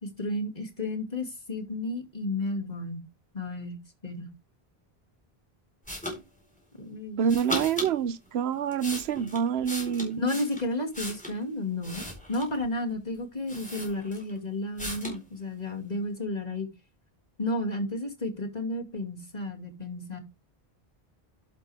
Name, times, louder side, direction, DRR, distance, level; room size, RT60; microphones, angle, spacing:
voice 1, 0.0-3.0 3.3-4.3 6.8-7.2 10.2-16.7 17.4-20.2, left 2 dB, 40° left, 2.5 m, -32 dB
sound 1, 5.9-6.2 7.3-7.9 8.5-11.4 11.8-12.6 13.1-13.2 13.5-14.4 14.8-15.2, equal, 5° left, 4.6 m, -36 dB
voice 2, 7.2-10.3, right 7 dB, 90° right, 0.9 m, -27 dB
11.5 x 6.6 x 3.5 m
omnidirectional pair, 1.0 m